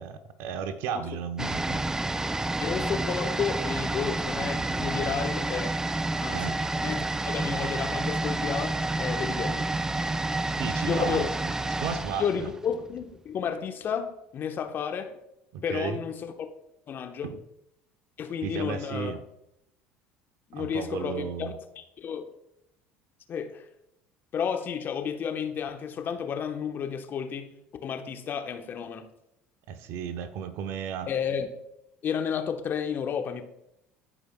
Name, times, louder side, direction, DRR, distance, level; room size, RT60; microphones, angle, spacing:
voice 1, 0.0-1.8 6.3-6.6 10.6-11.3 11.8-12.5 15.5-16.0 17.3-17.4 18.4-19.2 20.5-21.5 29.7-31.1, right 7 dB, 65° right, 9 dB, 0.8 m, -34 dB
sound 1, 1.4-13.1 13.4-13.5, right 2 dB, 10° right, 0.3 m, -29 dB
voice 2, 2.6-5.7 6.2-9.7 10.8-11.3 12.2-15.2 15.6-16.3 16.9-17.3 18.2-19.1 20.5-22.3 23.3-23.6 24.3-27.5 27.8-29.1 31.1-31.5 32.0-33.4, left 7 dB, 45° left, 6 dB, 1.0 m, -32 dB
14.5 x 5.0 x 2.2 m, 0.82 s
hypercardioid pair, 70°, 5 cm